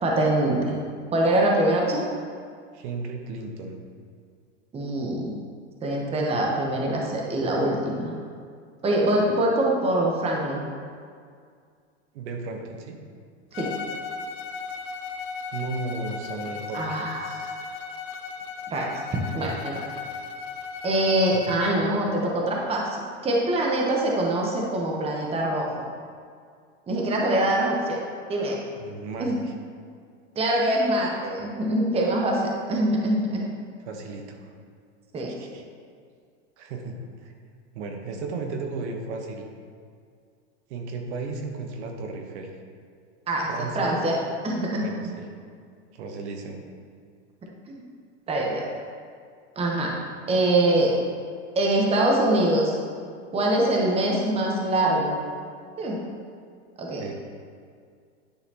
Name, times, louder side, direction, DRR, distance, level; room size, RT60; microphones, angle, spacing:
voice 1, 0.0-0.8 1.1-2.1 4.7-5.4 5.8-8.1 8.8-10.6 13.5-13.7 16.7-17.3 18.7-19.8 20.8-25.7 26.9-28.0 28.3-28.6 29.2-29.4 30.3-32.4 32.7-33.5 35.1-35.6 43.3-44.1 44.4-44.9 47.7-47.8 48.3-48.7 49.6-49.9 50.3-50.9 51.5-52.8 53.3-55.2 55.8-56.0 56.8-57.1, right 1 dB, 15° right, -2 dB, 0.9 m, -24 dB
voice 2, 2.7-3.8 12.1-13.0 15.5-17.6 21.5-21.6 28.8-29.5 33.8-34.5 35.3-35.6 36.6-37.3 37.7-39.5 40.7-42.5 43.5-44.0 44.8-45.3 45.9-46.6 56.9-57.1, right 3 dB, 65° right, 3 dB, 1.0 m, -35 dB
Bowed string instrument, 13.5-21.9, left 5 dB, 55° left, 0.7 m, -36 dB
9.9 x 4.1 x 2.8 m, 2.2 s
supercardioid pair, 120°, 36 cm